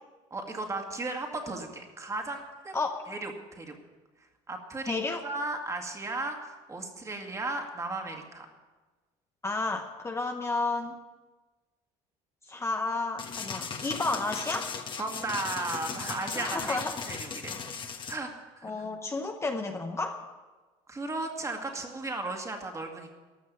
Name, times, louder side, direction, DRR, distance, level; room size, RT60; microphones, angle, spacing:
voice 1, 0.3-2.8 3.1-3.8 4.5-4.9 5.2-8.5 15.0-16.8 17.1-17.6 18.1-18.3 18.6-18.9 20.9-23.2, right 2 dB, 20° right, 3 dB, 2.1 m, -35 dB
voice 2, 4.9-5.3 9.4-11.0 12.5-14.7 16.4-16.9 18.6-20.2, left 3 dB, 20° left, 4 dB, 0.9 m, -31 dB
sound 1, 13.2-18.2, left 5 dB, 35° left, 1.3 m, -37 dB
13.5 x 6.1 x 9.6 m, 1.3 s
supercardioid pair, 100°, 14 cm